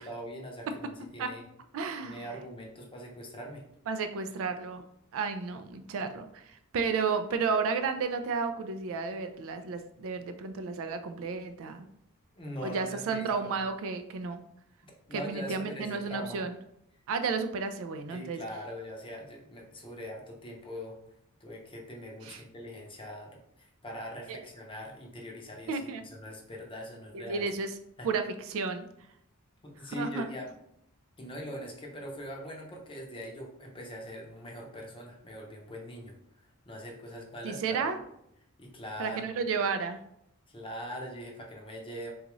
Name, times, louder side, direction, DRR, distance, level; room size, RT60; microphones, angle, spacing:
voice 1, 0.0-1.4 2.0-3.6 12.4-13.5 15.1-16.4 18.1-21.0 21.4-27.5 28.0-28.1 29.6-30.5 31.2-37.9 38.6-39.2 40.5-42.1, equal, 25° left, 0 dB, 0.6 m, -42 dB
voice 2, 1.7-2.2 3.9-4.8 5.1-11.8 12.6-14.4 15.1-16.5 17.1-18.4 22.2-22.4 24.3-24.4 25.7-26.0 27.1-27.7 28.0-28.9 30.0-30.3 37.4-38.0 39.0-40.0, right 5 dB, 65° right, 8 dB, 0.4 m, -32 dB
3.8 x 2.4 x 3.0 m, 0.77 s
head